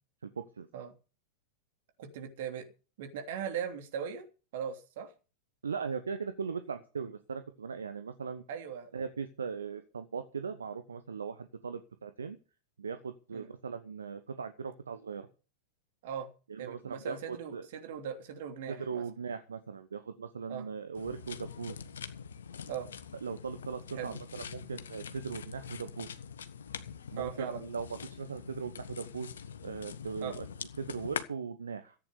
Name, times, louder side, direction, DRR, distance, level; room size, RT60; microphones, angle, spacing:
voice 1, 2.0-2.7 3.0-4.3 4.5-5.1 8.5-8.9 13.3-13.5 16.0-16.3 16.6-19.0 20.5-20.7 22.7-22.9 24.0-24.1 27.2-27.6 30.2-30.4, right 8 dB, 55° right, 5 dB, 3.0 m, -39 dB
voice 2, 5.6-8.4 8.9-12.4 12.8-15.3 16.5-17.7 18.7-21.7 23.2-26.1 27.1-29.3 29.6-30.5 30.8-31.9, right 5 dB, 70° right, 10 dB, 1.1 m, -39 dB
sound 1, 20.9-31.2, left 7 dB, 65° left, 1.3 m, -44 dB
14.5 x 9.2 x 6.8 m, 0.35 s
figure-of-eight pair, 90°, 0 cm